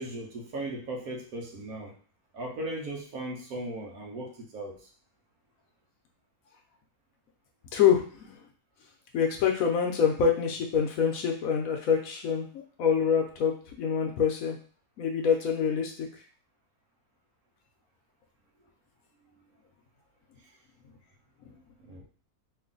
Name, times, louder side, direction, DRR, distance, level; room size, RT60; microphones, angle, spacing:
voice 1, 0.0-1.9 2.3-4.9 19.3-19.4 20.4-20.5 21.8-22.0, right 1 dB, 75° right, 0 dB, 1.3 m, -37 dB
voice 2, 7.7-8.3 9.1-12.5 12.8-14.6 15.0-16.1 21.4-21.6, left 7 dB, 70° left, 2 dB, 1.0 m, -26 dB
3.1 x 2.6 x 3.7 m, 0.42 s
omnidirectional pair, 1.6 m